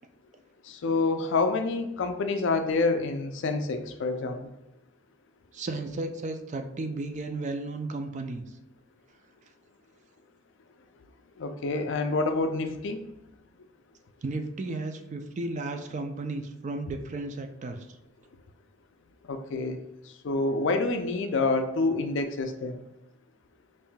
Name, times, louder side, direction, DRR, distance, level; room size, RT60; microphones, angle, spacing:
voice 1, 0.6-4.5 11.4-13.0 19.3-19.8 20.2-22.8, left 3 dB, 65° left, 7 dB, 0.4 m, -27 dB
voice 2, 5.5-8.4 14.2-17.9, right 2 dB, 40° right, 6 dB, 0.4 m, -34 dB
5.4 x 2.6 x 2.2 m, 0.89 s
head